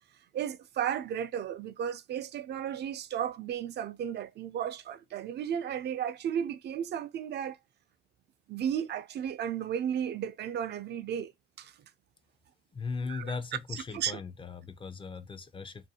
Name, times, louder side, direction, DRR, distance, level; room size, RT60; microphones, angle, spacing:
voice 1, 0.3-7.6 8.5-11.3 11.6-11.7 13.1-13.4 13.7-14.1, right 9 dB, 60° right, 0.4 m, -34 dB
voice 2, 12.7-15.9, left 4 dB, 25° left, 0.4 m, -38 dB
2.6 x 2.3 x 2.7 m
cardioid pair, 90°, 20 cm